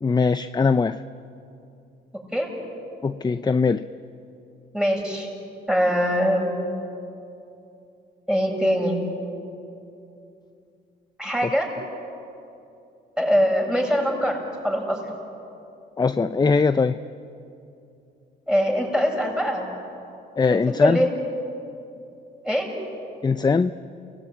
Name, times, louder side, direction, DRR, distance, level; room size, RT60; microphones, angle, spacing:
voice 1, 0.0-1.0 3.0-3.9 11.4-11.5 16.0-17.0 20.4-21.1 23.2-23.7, left 4 dB, 20° left, 12 dB, 0.6 m, -21 dB
voice 2, 4.7-5.3 5.7-6.5 8.3-9.0 11.2-11.7 13.2-15.0 18.5-19.7 20.5-21.1 22.4-22.7, equal, 5° right, -1 dB, 7.4 m, -22 dB
30.0 x 19.0 x 9.2 m, 2.7 s
cardioid pair, 90°, 20 cm